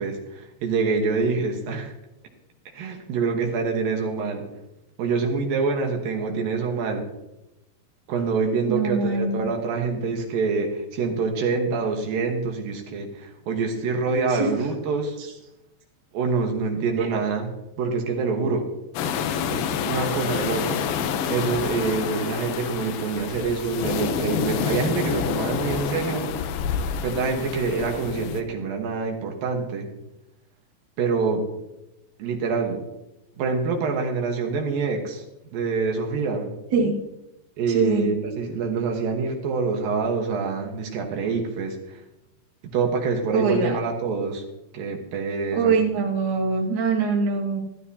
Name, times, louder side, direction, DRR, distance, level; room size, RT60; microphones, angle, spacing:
voice 1, 0.0-1.9 2.7-4.5 5.0-7.1 8.1-15.2 16.1-18.7 19.5-20.9 21.3-26.3 27.0-29.9 31.0-31.4 32.2-32.8 33.4-35.2 35.5-36.5 37.6-42.0 42.6-44.4 44.7-45.8, right 4 dB, 75° right, 2 dB, 3.0 m, -26 dB
voice 2, 8.7-9.4 14.3-14.5 15.2-15.3 17.0-17.1 36.7-37.0 37.7-38.1 43.3-43.8 45.5-47.6, right 4 dB, 40° right, -2 dB, 2.0 m, -23 dB
sound 1, 19.0-28.4, left 7 dB, 90° left, 2.7 m, -28 dB
14.0 x 13.0 x 2.8 m, 0.93 s
omnidirectional pair, 4.2 m